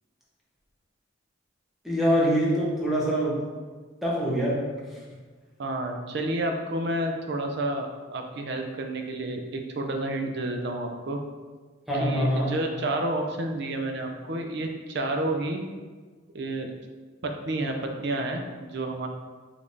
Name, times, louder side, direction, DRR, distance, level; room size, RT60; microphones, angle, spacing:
voice 1, 1.8-3.4 4.0-4.6 4.9-5.0 11.9-12.5, equal, ahead, -7 dB, 1.0 m, -24 dB
voice 2, 5.6-11.2 12.0-15.6 16.3-16.7 17.2-19.1, right 1 dB, 55° right, 3 dB, 0.5 m, -30 dB
5.0 x 3.4 x 2.7 m, 1.4 s
head